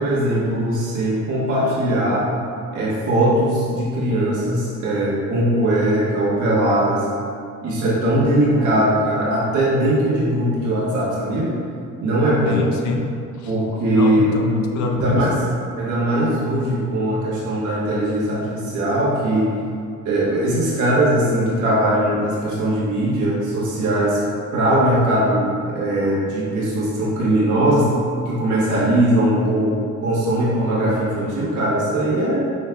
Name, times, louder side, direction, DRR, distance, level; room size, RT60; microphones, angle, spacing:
voice 1, 0.0-2.3 2.7-7.1 7.6-11.5 12.0-12.6 13.5-14.3 15.0-15.3 15.8-19.5 20.0-24.2 24.5-27.9 28.2-29.8 30.0-32.4, right 1 dB, 75° right, -7 dB, 1.3 m, -20 dB
voice 2, 12.5-13.5 13.9-15.3, left 4 dB, 70° left, 2 dB, 0.6 m, -25 dB
5.3 x 3.2 x 2.2 m, 2.4 s
cardioid pair, 90°, 30 cm